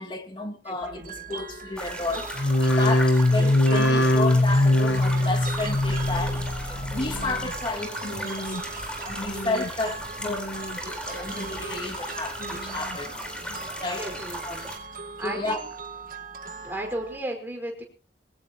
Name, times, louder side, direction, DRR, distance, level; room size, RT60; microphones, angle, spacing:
voice 1, 0.0-8.7 9.0-10.6 10.8-13.1 13.4-14.1 14.4-14.6 15.2-15.6, left 2 dB, 25° left, 2.3 m, -32 dB
voice 2, 0.7-1.2 3.3-4.1 14.0-14.6 15.2-15.6 16.6-17.8, right 1 dB, 10° right, 5.1 m, -35 dB
sound 1, 0.8-17.2, right 4 dB, 50° right, 1.7 m, -39 dB
sound 2, 1.8-14.8, equal, 5° left, 4.2 m, -37 dB
sound 3, 2.3-7.7 8.0-8.6 9.1-9.8 10.2-10.8 11.3-11.9 12.4-13.0 13.5-13.6, left 1 dB, 75° left, 1.4 m, -24 dB
22.5 x 18.0 x 3.0 m
head